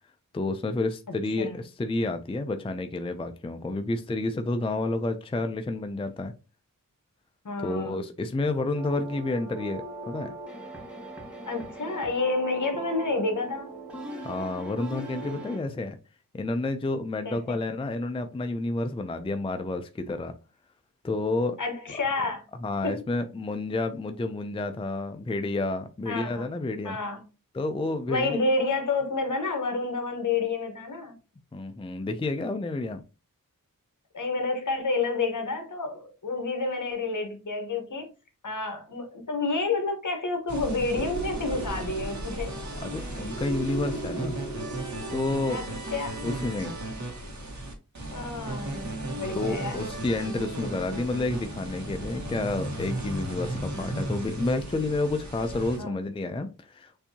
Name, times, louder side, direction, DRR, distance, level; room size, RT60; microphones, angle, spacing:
voice 1, 0.3-6.3 7.6-10.3 14.2-16.0 16.3-20.3 21.0-21.6 22.6-27.0 27.5-28.4 31.5-33.0 42.8-44.4 45.1-45.6 46.2-46.8 49.4-57.0, left 2 dB, 15° left, 0.4 m, -30 dB
voice 2, 7.4-8.0 11.5-13.7 17.2-17.6 21.6-22.4 22.8-23.1 26.1-26.5 26.8-27.2 28.1-31.2 34.1-38.1 38.4-42.6 45.5-45.6 45.9-46.2 48.1-48.8 49.1-49.8 55.8-56.0, left 3 dB, 60° left, 1.3 m, -29 dB
sound 1, 8.7-15.6, right 3 dB, 5° right, 1.4 m, -39 dB
sound 2, 40.5-55.8, right 1 dB, 55° right, 1.4 m, -35 dB
sound 3, 40.9-45.6, right 2 dB, 70° right, 1.8 m, -37 dB
6.8 x 2.7 x 2.8 m
wide cardioid pair, 75°, 34 cm